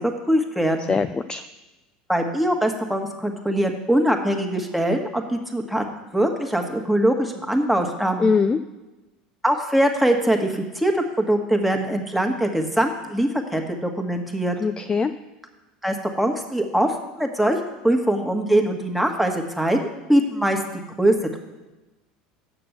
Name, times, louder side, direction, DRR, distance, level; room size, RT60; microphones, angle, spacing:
voice 1, 0.0-0.9 2.1-5.8 6.1-8.3 9.4-14.5 15.8-17.6 17.8-20.6 21.0-21.4, right 1 dB, ahead, 3 dB, 1.5 m, -22 dB
voice 2, 0.9-1.4 8.2-8.6 14.6-15.1, left 5 dB, 20° left, 10 dB, 0.4 m, -21 dB
6.8 x 6.8 x 7.9 m, 1.1 s
hypercardioid pair, 85°, 4 cm